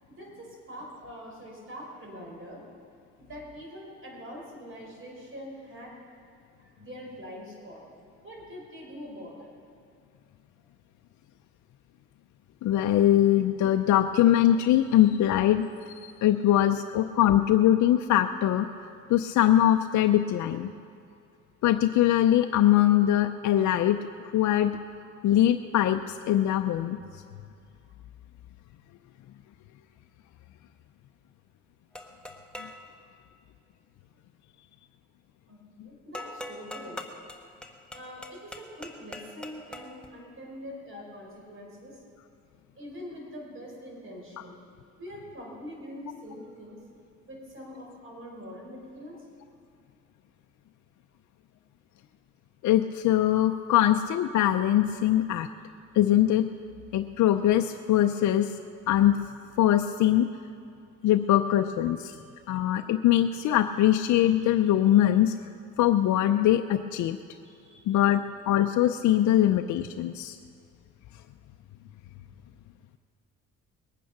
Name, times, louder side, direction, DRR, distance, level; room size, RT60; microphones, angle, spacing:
voice 1, 0.1-2.6 3.2-6.0 6.6-7.8 8.2-9.5 16.1-16.7 17.0-17.1 35.5-37.0 37.9-42.0 42.7-44.6 45.0-46.8 47.3-49.3 61.0-61.1 62.1-62.2 67.4-68.0, equal, 45° right, -2 dB, 4.8 m, -44 dB
voice 2, 12.6-18.7 19.1-20.7 21.6-24.8 25.2-27.0 52.6-55.5 55.9-56.5 56.9-58.5 58.9-59.2 59.6-60.3 61.0-62.1 62.5-65.3 65.8-67.2 67.9-70.4, left 12 dB, 70° left, 6 dB, 0.6 m, -22 dB
sound 1, 31.9-32.8 36.1-40.1, left 1 dB, 5° left, 1.3 m, -42 dB
21.0 x 9.1 x 5.9 m, 2.4 s
cardioid pair, 90°, 30 cm